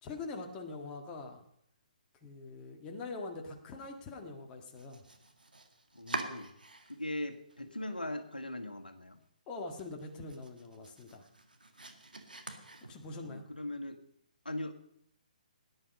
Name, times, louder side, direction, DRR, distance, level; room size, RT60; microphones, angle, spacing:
voice 1, 0.0-1.4 2.2-5.0 9.5-11.2 12.8-13.5, left 3 dB, 20° left, 2 dB, 1.7 m, -43 dB
Domestic sounds home sounds, 4.6-7.2 7.5-8.2 8.6-8.7 9.1-9.2 9.6-13.3, right 2 dB, 80° right, 1.9 m, -45 dB
voice 2, 5.9-6.5 6.9-9.2 13.2-14.0 14.4-14.7, left 1 dB, 85° left, 4 dB, 1.5 m, -40 dB
18.0 x 10.5 x 5.3 m, 0.72 s
figure-of-eight pair, 135°, 5 cm